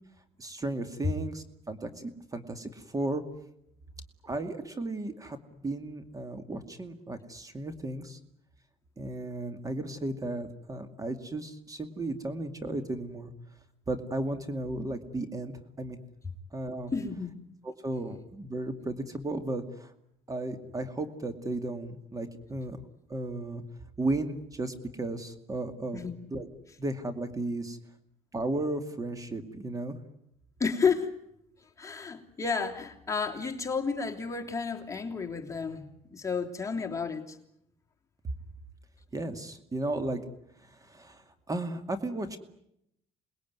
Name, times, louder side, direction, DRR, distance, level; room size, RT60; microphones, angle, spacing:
voice 1, 0.4-3.2 4.2-8.2 9.0-13.3 13.9-16.0 16.5-16.9 17.6-19.9 20.3-22.8 23.1-23.6 24.0-26.0 26.3-26.5 26.8-27.8 28.3-30.0 39.1-40.2 40.6-42.4, right 2 dB, 25° right, 9 dB, 2.4 m, -34 dB
voice 2, 16.9-17.3 25.9-26.2 30.6-31.1 31.8-37.4, left 5 dB, 20° left, 2 dB, 3.1 m, -31 dB
28.5 x 20.5 x 9.6 m, 0.78 s
cardioid pair, 105°, 15 cm